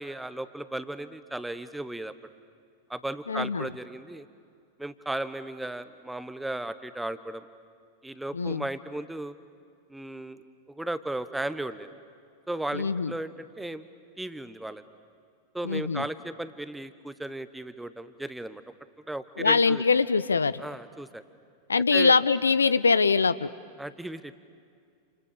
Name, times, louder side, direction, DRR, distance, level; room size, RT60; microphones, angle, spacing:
voice 1, 0.0-2.1 2.9-4.3 4.8-7.4 8.0-9.4 9.9-10.4 10.7-11.9 12.5-13.8 14.2-14.8 15.5-18.6 19.1-19.8 20.6-21.2 21.9-22.1 23.8-24.4, right 1 dB, 5° right, 13 dB, 1.2 m, -35 dB
voice 2, 3.3-3.7 8.3-8.7 12.7-13.1 15.6-16.1 19.4-20.6 21.7-23.5, left 4 dB, 75° left, 16 dB, 0.6 m, -23 dB
29.0 x 29.0 x 6.9 m, 2.3 s
figure-of-eight pair, 90°, 0 cm